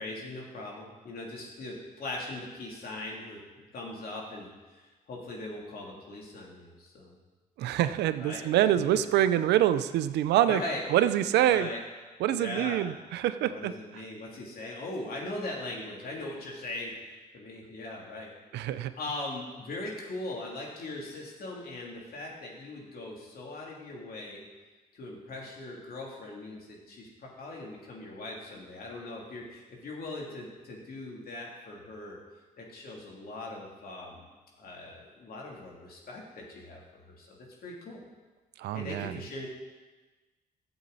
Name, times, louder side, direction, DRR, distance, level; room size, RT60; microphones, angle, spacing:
voice 1, 0.0-3.4 3.7-7.1 8.2-8.5 10.5-10.8 11.4-11.8 12.3-12.8 13.4-16.9 17.3-18.3 18.6-18.7 19.0-24.4 24.9-32.2 32.6-34.3 34.6-36.8 37.0-38.0 38.7-39.5, left 2 dB, 65° left, -2 dB, 3.0 m, -40 dB
voice 2, 7.6-10.6 10.9-11.7 12.2-13.7 18.5-18.9 38.6-39.2, right 12 dB, 85° right, 13 dB, 0.5 m, -25 dB
13.0 x 8.0 x 4.1 m, 1.2 s
supercardioid pair, 70°, 17 cm